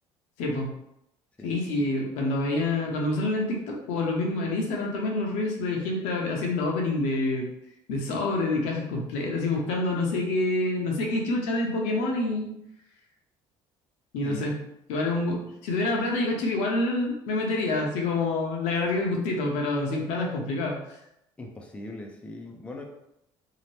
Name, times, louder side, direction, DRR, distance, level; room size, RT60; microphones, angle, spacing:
voice 1, 1.4-7.5 7.9-12.5 14.1-14.6 14.9-21.0, left 2 dB, 85° left, 0 dB, 0.7 m, -27 dB
voice 2, 14.2-14.5 21.4-22.8, left 2 dB, 10° left, 1 dB, 0.4 m, -40 dB
2.8 x 2.0 x 3.1 m, 0.81 s
cardioid pair, 110°, 12 cm